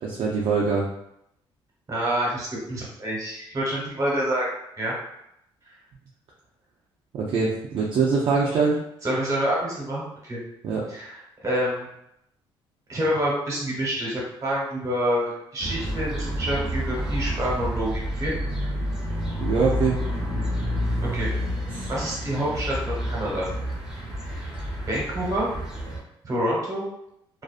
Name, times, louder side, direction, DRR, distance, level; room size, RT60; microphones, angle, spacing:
voice 1, 0.0-0.9 7.1-8.8 10.6-10.8 19.4-20.0 21.7-21.9, right 5 dB, 60° right, -4 dB, 0.4 m, -23 dB
voice 2, 1.9-4.5 4.8-4.9 9.0-10.4 10.9-11.9 12.9-18.3 21.1-21.3 21.9-23.5 24.2-24.5 24.9-25.5 26.2-26.9, equal, 35° right, -4 dB, 1.1 m, -27 dB
sound 1, 15.6-26.0, equal, 5° right, 1.0 m, -29 dB
2.5 x 2.4 x 2.4 m, 0.79 s
cardioid pair, 110°, 10 cm